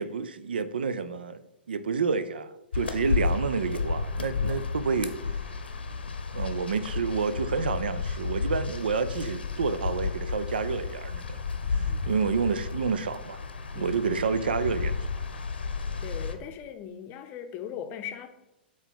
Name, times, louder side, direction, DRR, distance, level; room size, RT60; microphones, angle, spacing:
voice 1, 0.0-5.3 6.3-11.4 11.7-13.4 13.7-15.0, right 5 dB, 65° right, 0.5 m, -29 dB
sound 1, 2.7-16.3, left 5 dB, 70° left, 0.8 m, -32 dB
voice 2, 13.7-14.2 16.0-18.3, left 9 dB, 30° left, 0.7 m, -39 dB
8.0 x 3.2 x 5.4 m
figure-of-eight pair, 105°, 6 cm